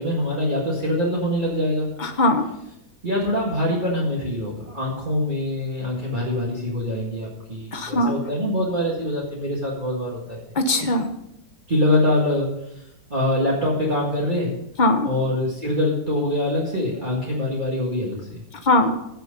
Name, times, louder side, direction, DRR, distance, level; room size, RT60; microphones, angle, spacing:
voice 1, 0.0-1.9 3.0-10.4 11.7-12.8 13.1-14.5 15.0-18.4, left 1 dB, 25° right, -5 dB, 2.0 m, -24 dB
voice 2, 2.0-2.5 7.7-8.1 10.5-11.1 14.8-15.1 18.5-18.9, left 2 dB, 30° left, 6 dB, 1.0 m, -20 dB
16.0 x 6.3 x 5.3 m, 0.83 s
omnidirectional pair, 1.9 m